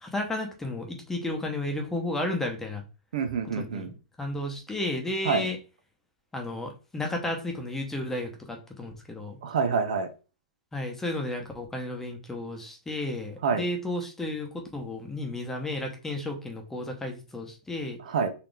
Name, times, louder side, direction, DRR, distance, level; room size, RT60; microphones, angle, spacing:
voice 1, 0.0-2.8 3.5-5.6 6.3-9.4 10.7-18.0, left 1 dB, 10° left, 2 dB, 0.9 m, -33 dB
voice 2, 3.1-3.9 5.2-5.5 9.4-10.1 13.4-13.7 18.0-18.3, right 5 dB, 70° right, 8 dB, 0.8 m, -27 dB
4.0 x 2.9 x 3.3 m, 0.33 s
hypercardioid pair, 135°, 4 cm